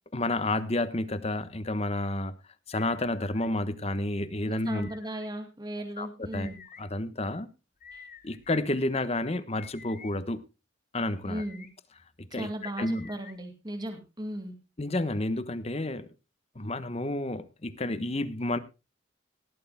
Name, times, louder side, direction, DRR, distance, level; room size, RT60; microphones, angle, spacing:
voice 1, 0.1-2.3 2.7-4.9 6.0-6.1 6.3-6.5 6.8-7.5 8.2-10.4 10.9-11.4 12.3-13.1 14.8-16.1 16.5-18.6, left 2 dB, 35° left, 1.1 m, -30 dB
sound 1, 2.7-3.5 4.6-5.3 6.3-6.8 7.8-8.6 9.6-10.1 11.2-11.7 12.8-13.4, left 6 dB, 50° left, 7.8 m, -50 dB
voice 2, 4.5-6.6 7.9-8.1 11.2-11.7 12.3-14.5, right 1 dB, 20° right, 2.3 m, -37 dB
19.0 x 13.0 x 2.2 m
head